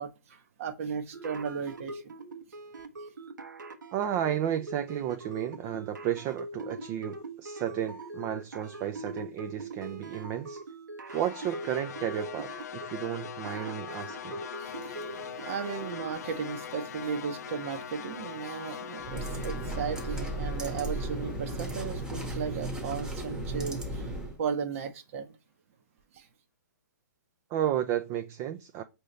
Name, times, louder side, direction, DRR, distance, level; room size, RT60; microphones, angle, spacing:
voice 1, 0.0-2.1 14.6-25.4 26.1-26.3, right 6 dB, 45° right, 0.7 m, -36 dB
sound 1, 1.1-16.1, right 2 dB, 80° right, 1.1 m, -42 dB
voice 2, 3.9-10.6 11.1-14.4 27.5-28.8, right 11 dB, 25° right, 0.4 m, -33 dB
sound 2, 11.1-23.3, left 8 dB, 60° left, 0.4 m, -42 dB
sound 3, 19.0-24.4, right 1 dB, 5° right, 0.9 m, -35 dB
5.4 x 2.8 x 3.1 m
hypercardioid pair, 135°, 10 cm